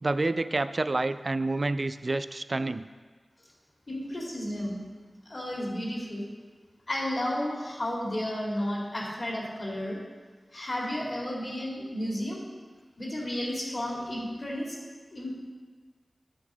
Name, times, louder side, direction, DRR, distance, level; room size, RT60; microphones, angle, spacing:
voice 1, 0.0-2.8, right 2 dB, 55° right, 13 dB, 0.3 m, -28 dB
voice 2, 3.9-4.8 5.3-6.3 6.9-10.0 10.5-12.4 13.0-14.8 15.1-15.3, left 1 dB, 55° left, -3 dB, 2.1 m, -32 dB
8.9 x 4.0 x 6.1 m, 1.5 s
cardioid pair, 40°, 0 cm